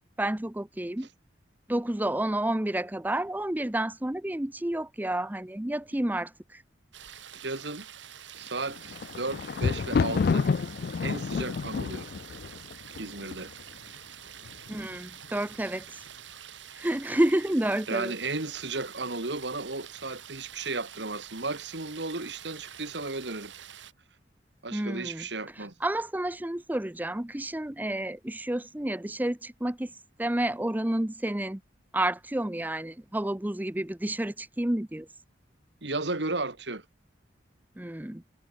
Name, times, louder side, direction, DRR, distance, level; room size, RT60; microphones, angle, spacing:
voice 1, 0.2-1.1 1.7-6.6 14.7-15.8 16.7-18.1 24.7-25.3 25.8-29.9 30.2-31.6 31.9-35.1 37.8-38.2, right 1 dB, 10° right, 0.6 m, -30 dB
sound 1, 6.9-23.9, right 9 dB, 90° right, 2.9 m, -47 dB
voice 2, 7.3-7.9 8.3-10.5 11.0-12.1 13.0-13.5 17.9-23.5 24.6-25.7 35.8-36.8, right 3 dB, 70° right, 2.5 m, -34 dB
Thunder, 8.6-13.7 14.5-15.0 15.2-15.3, left 5 dB, 55° left, 0.4 m, -29 dB
head